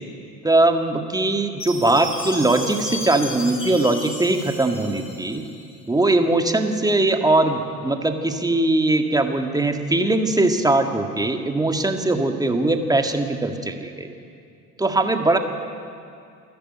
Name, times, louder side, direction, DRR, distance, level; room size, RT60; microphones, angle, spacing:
voice 1, 0.4-5.5 5.9-14.1 14.8-15.4, right 2 dB, 10° right, 5 dB, 1.9 m, -20 dB
Chime, 1.6-5.7, left 2 dB, 25° left, 5.5 m, -34 dB
28.0 x 11.5 x 9.0 m, 2.4 s
figure-of-eight pair, 65°, 46 cm